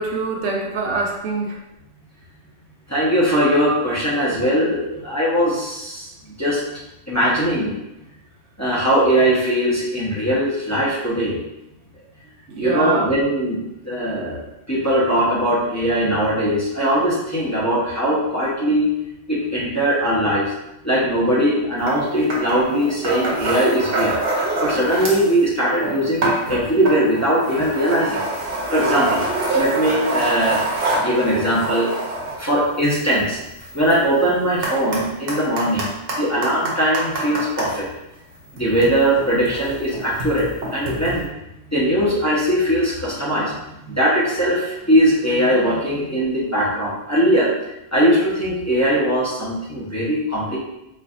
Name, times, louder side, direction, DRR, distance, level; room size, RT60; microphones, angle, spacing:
voice 1, 0.0-1.6 12.5-13.1, right 3 dB, 85° right, 0 dB, 1.0 m, -24 dB
voice 2, 2.9-6.1 6.4-6.6 7.1-7.8 8.6-11.4 12.6-14.4 14.7-18.9 19.3-20.5 20.8-24.1 24.6-28.2 28.7-29.3 29.5-30.6 31.0-33.4 33.7-35.9 36.2-37.9 38.5-41.3 41.7-43.5 43.9-47.5 47.9-50.6, equal, 15° left, -8 dB, 0.7 m, -20 dB
sound 1, 21.9-22.0 22.3-25.3 25.6-37.7 38.5-41.2, right 2 dB, 55° right, 0.9 m, -26 dB
4.3 x 2.4 x 2.4 m, 0.90 s
omnidirectional pair, 1.2 m